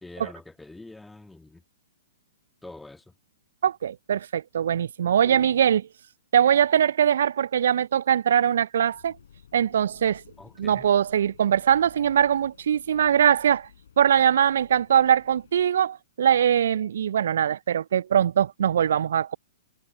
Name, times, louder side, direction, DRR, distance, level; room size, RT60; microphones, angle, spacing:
voice 1, 0.0-1.6 2.6-3.1 5.2-5.5 10.4-10.9, left 2 dB, 5° left, 1.9 m, -45 dB
voice 2, 3.6-5.8 6.3-9.2 9.5-10.2 10.6-13.7 14.0-19.4, right 9 dB, 60° right, 0.5 m, -22 dB
sound 1, 8.9-15.7, left 8 dB, 60° left, 5.2 m, -55 dB
figure-of-eight pair, 115°, 0 cm